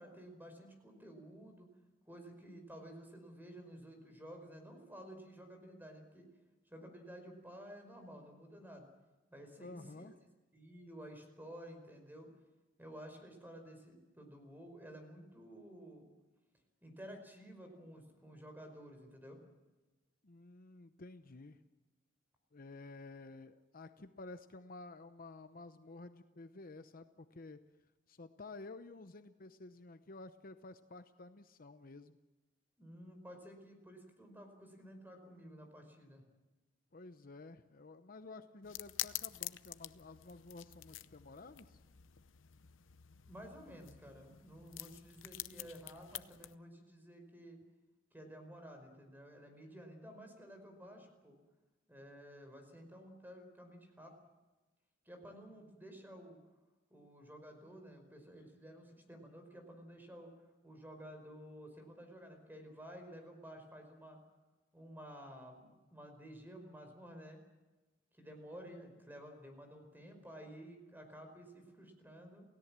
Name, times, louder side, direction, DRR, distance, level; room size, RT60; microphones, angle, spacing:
voice 1, 0.0-1.7 2.0-6.3 6.7-8.9 9.3-10.1 10.5-12.3 12.8-16.1 16.8-19.4 32.8-36.2 43.3-47.6 48.1-51.4 51.9-54.1 55.0-56.4 56.9-60.3 60.6-64.2 64.7-67.4 68.1-72.4, equal, 10° right, 5 dB, 5.0 m, -53 dB
voice 2, 9.6-10.1 20.2-21.6 22.5-27.6 28.1-32.2 36.9-41.8 68.6-68.7, left 3 dB, 50° left, 10 dB, 0.8 m, -52 dB
sound 1, 38.6-46.6, left 14 dB, 80° left, 0.8 m, -47 dB
29.0 x 17.0 x 7.5 m, 1.2 s
head